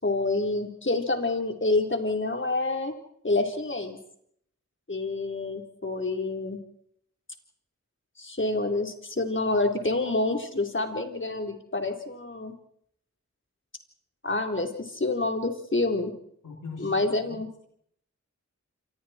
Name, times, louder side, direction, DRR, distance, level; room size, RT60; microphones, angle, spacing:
voice 1, 0.0-2.9 3.2-4.0 4.9-6.6 8.2-12.5 14.2-16.1 16.8-17.5, left 2 dB, 40° left, 4 dB, 4.0 m, -27 dB
voice 2, 16.4-17.7, left 3 dB, 80° left, 0 dB, 3.6 m, -42 dB
27.0 x 26.5 x 4.5 m, 0.69 s
cardioid pair, 40°, 31 cm